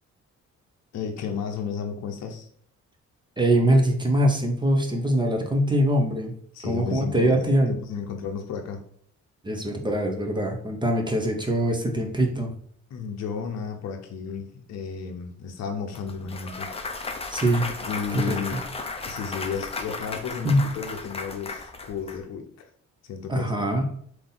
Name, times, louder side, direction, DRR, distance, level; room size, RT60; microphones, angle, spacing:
voice 1, 0.9-2.5 6.5-8.8 12.9-17.0 17.8-18.6 19.1-22.7 23.0-23.7, left 6 dB, 60° left, 3 dB, 0.8 m, -33 dB
voice 2, 3.4-6.3 6.6-7.7 9.4-12.5 17.3-17.7 18.1-18.4 20.4-20.6 23.3-23.9, right 1 dB, 15° right, 2 dB, 0.8 m, -23 dB
Clapping / Cheering / Applause, 16.0-22.2, left 3 dB, 20° left, 0.5 m, -35 dB
3.6 x 2.7 x 3.8 m, 0.63 s
cardioid pair, 90°, 30 cm